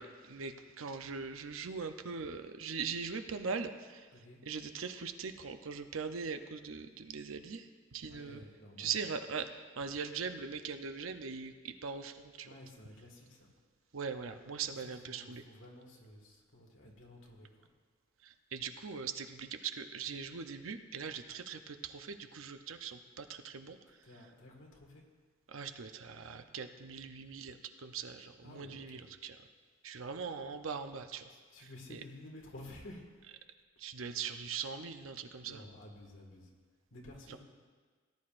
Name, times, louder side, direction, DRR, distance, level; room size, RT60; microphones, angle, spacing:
voice 1, 0.0-4.1 4.5-7.7 7.9-8.4 8.8-12.5 13.9-15.4 18.2-23.8 25.5-29.4 29.8-31.2 33.8-35.6, right 5 dB, 90° right, 8 dB, 0.7 m, -41 dB
voice 2, 4.1-4.4 8.0-8.9 12.4-13.5 14.7-17.7 24.0-25.1 28.4-29.1 31.2-33.1 34.1-34.3 35.4-36.5 36.9-37.4, left 1 dB, 75° left, 0 dB, 2.0 m, -53 dB
18.5 x 10.5 x 2.6 m, 1.5 s
head